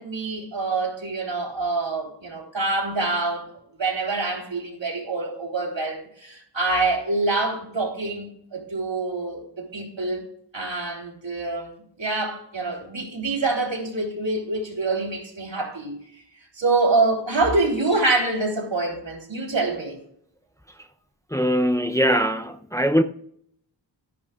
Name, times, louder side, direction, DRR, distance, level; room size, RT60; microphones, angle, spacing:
voice 1, 0.0-3.5 3.8-10.2 10.5-11.7 12.0-16.0 16.6-20.0, right 3 dB, 90° right, 3.7 m, -26 dB
voice 2, 21.3-23.0, equal, 5° left, 0.6 m, -21 dB
16.5 x 11.0 x 2.5 m
wide cardioid pair, 65°, 44 cm